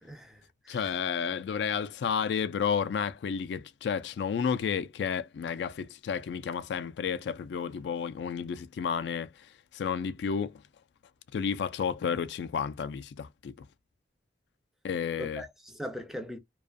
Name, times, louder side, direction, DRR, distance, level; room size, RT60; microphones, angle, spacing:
voice 1, 0.0-1.3 15.2-16.4, equal, ahead, 0.4 m, -41 dB
voice 2, 0.7-9.3 9.7-10.5 11.3-13.5 14.8-15.4, left 7 dB, 70° left, 0.3 m, -31 dB
2.4 x 2.3 x 2.4 m
head